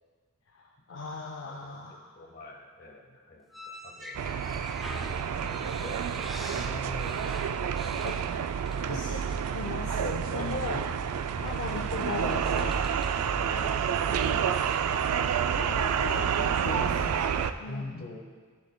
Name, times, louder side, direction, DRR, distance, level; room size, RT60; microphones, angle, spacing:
voice 1, 0.5-2.3 8.0-8.3 8.9-9.2 9.5-10.8 11.4-12.8 15.6-17.1 17.6-18.0, left 4 dB, 55° left, 1 dB, 0.5 m, -38 dB
voice 2, 1.4-4.2 5.0-7.2 7.8-7.9 8.7-9.0 10.1-11.6 12.5-12.8 13.2-13.7 14.0-15.1 16.6-16.9 17.3-18.2, left 2 dB, 40° left, 0 dB, 1.2 m, -44 dB
sound 1, 3.5-9.0 9.3-9.5 10.7-10.9 11.5-13.2, equal, ahead, 0.5 m, -45 dB
sound 2, 4.1-17.5, right 7 dB, 90° right, 0.4 m, -29 dB
11.0 x 10.0 x 2.2 m, 1.5 s
head